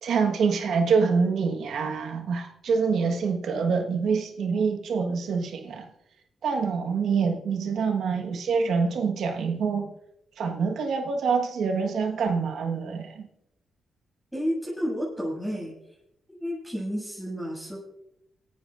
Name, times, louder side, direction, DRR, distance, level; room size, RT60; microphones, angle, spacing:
voice 1, 0.0-5.9 6.4-9.9 10.4-13.2, right 5 dB, 75° right, 5 dB, 1.5 m, -26 dB
voice 2, 14.3-16.0 16.3-17.8, equal, 5° right, -5 dB, 6.9 m, -31 dB
28.0 x 12.0 x 2.5 m, 0.83 s
supercardioid pair, 55°, 0 cm